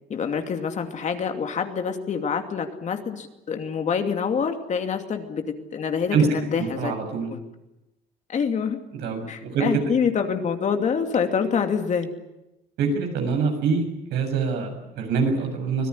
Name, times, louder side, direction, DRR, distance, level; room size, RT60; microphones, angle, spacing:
voice 1, 0.1-6.9 7.3-7.4 8.3-8.8 9.3-12.1, left 6 dB, 45° left, 6 dB, 2.7 m, -26 dB
voice 2, 6.6-7.3 8.9-9.8 12.8-15.9, right 5 dB, 80° right, 4 dB, 7.1 m, -25 dB
25.0 x 17.5 x 9.7 m, 0.93 s
cardioid pair, 110°, 17 cm